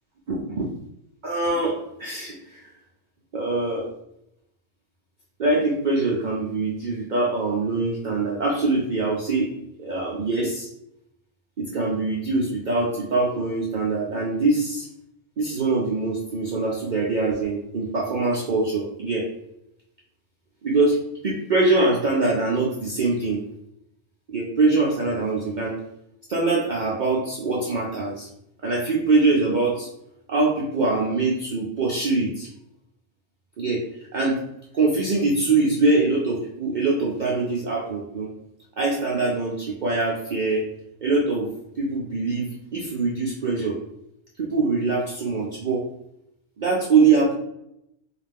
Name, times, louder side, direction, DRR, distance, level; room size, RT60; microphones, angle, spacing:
voice 1, 0.3-0.7 1.2-2.6 3.3-3.9 5.4-9.5 9.8-10.7 11.6-14.9 15.4-19.3 20.6-23.4 24.3-25.8 26.3-28.3 28.6-29.9 30.3-32.5 33.6-33.8 34.1-34.4 34.7-38.3 38.8-40.7 41.0-41.5 41.8-43.8 44.4-45.9 46.6-47.3, right 3 dB, 70° right, -3 dB, 0.4 m, -23 dB
2.4 x 2.2 x 3.4 m, 0.78 s
omnidirectional pair, 1.3 m